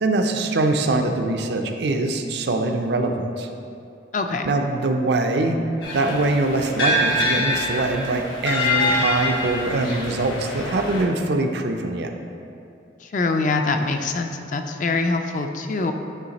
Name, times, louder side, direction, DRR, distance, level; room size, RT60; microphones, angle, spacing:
voice 1, 0.0-3.5 4.4-5.6 5.9-12.1, right 2 dB, 60° right, 5 dB, 0.4 m, -23 dB
voice 2, 4.1-4.5 13.0-15.9, left 3 dB, 40° left, 5 dB, 0.3 m, -24 dB
sound 1, 5.8-11.0, left 1 dB, 90° left, 1.1 m, -25 dB
9.1 x 3.2 x 4.0 m, 2.6 s
head